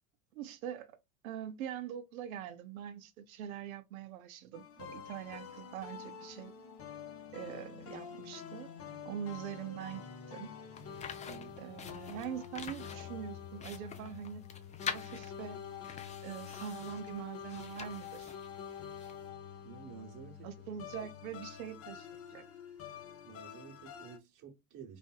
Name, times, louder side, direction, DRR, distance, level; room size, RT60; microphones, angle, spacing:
voice 1, 0.3-1.0 1.2-6.5 7.3-8.7 9.1-10.5 11.6-14.4 14.9-15.6 16.2-18.3 20.4-22.4, right 9 dB, 80° right, 0.6 m, -43 dB
sound 1, 4.5-24.2, left 8 dB, 35° left, 0.8 m, -47 dB
sound 2, 10.7-19.2, left 6 dB, 20° left, 0.4 m, -46 dB
voice 2, 11.3-11.6 19.6-20.6 21.0-21.1 23.2-25.0, right 7 dB, 45° right, 1.2 m, -51 dB
3.2 x 2.5 x 2.3 m
hypercardioid pair, 80°, 42 cm